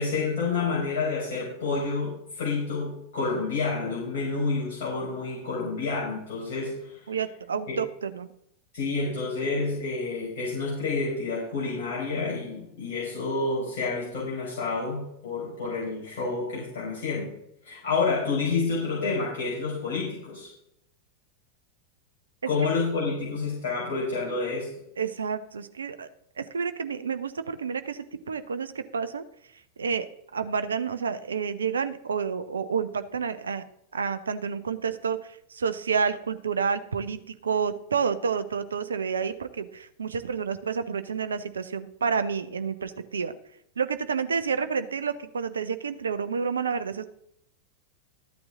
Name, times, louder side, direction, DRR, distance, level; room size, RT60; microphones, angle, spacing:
voice 1, 0.0-7.1 7.7-7.8 8.7-17.3 17.6-20.5 22.4-24.7, left 4 dB, 50° left, -6 dB, 4.7 m, -29 dB
voice 2, 7.1-8.3 25.0-26.1 26.4-29.2 29.8-33.6 33.9-43.3 43.8-47.1, right 6 dB, 70° right, 11 dB, 0.7 m, -29 dB
14.0 x 8.9 x 3.7 m, 0.76 s
figure-of-eight pair, 90°, 0 cm